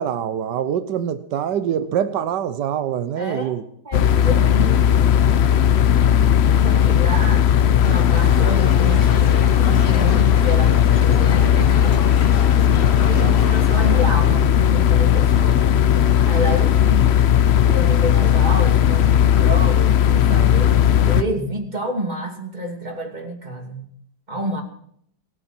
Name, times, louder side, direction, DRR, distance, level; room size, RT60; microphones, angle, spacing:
voice 1, 0.0-3.6 13.1-13.5, right 9 dB, 80° right, 11 dB, 1.5 m, -25 dB
voice 2, 3.2-3.6 3.8-5.5 6.0-6.1 6.6-12.0 13.0-15.9 16.2-17.2 17.7-23.9 24.3-24.6, right 1 dB, 25° right, 2 dB, 2.7 m, -29 dB
sound 1, 3.9-21.2, left 9 dB, 60° left, 0.7 m, -16 dB
sound 2, 7.8-14.0, left 5 dB, 40° left, 1.1 m, -31 dB
27.0 x 9.5 x 4.4 m, 0.66 s
omnidirectional pair, 1.8 m